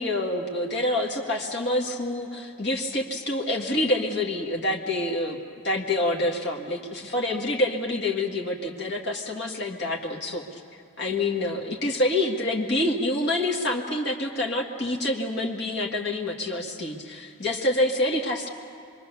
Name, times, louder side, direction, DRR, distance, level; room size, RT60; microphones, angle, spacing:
voice 1, 0.0-5.4 5.6-10.6 11.0-18.5, left 1 dB, 50° left, -1 dB, 1.9 m, -27 dB
26.0 x 22.5 x 6.9 m, 2.4 s
head